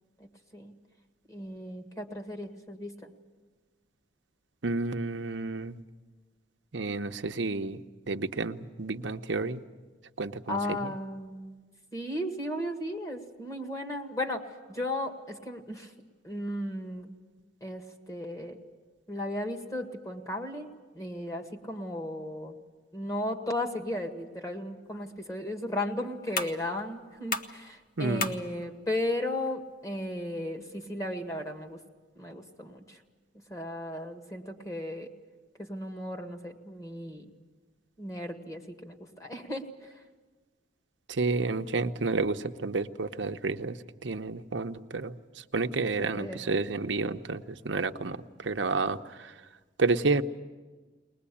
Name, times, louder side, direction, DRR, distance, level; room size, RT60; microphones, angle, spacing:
voice 1, 0.2-0.7 1.3-3.1 10.5-11.6 11.9-15.9 16.2-17.1 17.6-18.6 19.1-22.6 22.9-31.8 32.2-33.0 33.5-35.1 35.6-37.3 38.0-40.0 46.0-46.4, left 1 dB, 20° left, 3 dB, 2.0 m, -35 dB
voice 2, 4.6-5.8 6.7-7.8 8.1-9.6 10.2-10.9 28.0-28.3 41.1-49.3 49.8-50.2, right 3 dB, 75° right, 8 dB, 0.9 m, -30 dB
sound 1, 24.8-31.8, left 3 dB, 50° left, 1.1 m, -41 dB
21.0 x 20.5 x 8.6 m, 1.3 s
head